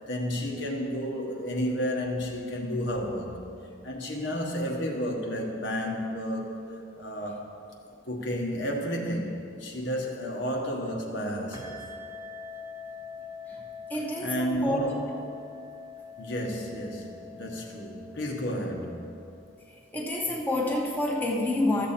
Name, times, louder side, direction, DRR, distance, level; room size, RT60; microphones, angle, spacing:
voice 1, 0.1-3.4 3.8-7.4 8.0-11.9 14.2-15.3 16.2-19.1, equal, 75° left, 0 dB, 1.3 m, -32 dB
sound 1, 11.5-19.7, left 5 dB, 20° right, 0.7 m, -44 dB
voice 2, 13.9-14.8 19.9-21.9, left 1 dB, 10° left, -3 dB, 1.1 m, -28 dB
14.0 x 7.0 x 4.3 m, 2.6 s
head